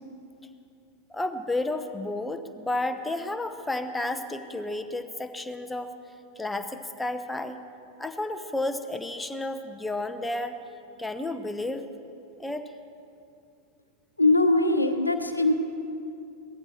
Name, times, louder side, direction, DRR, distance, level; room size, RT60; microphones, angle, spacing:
voice 1, 1.1-5.9 6.4-7.6 8.0-10.6 11.0-11.9 12.4-12.6, left 2 dB, 5° left, 8 dB, 0.8 m, -31 dB
voice 2, 14.2-15.5, left 2 dB, 85° left, 6 dB, 0.8 m, -21 dB
18.0 x 14.5 x 4.4 m, 2.6 s
figure-of-eight pair, 90°, 0 cm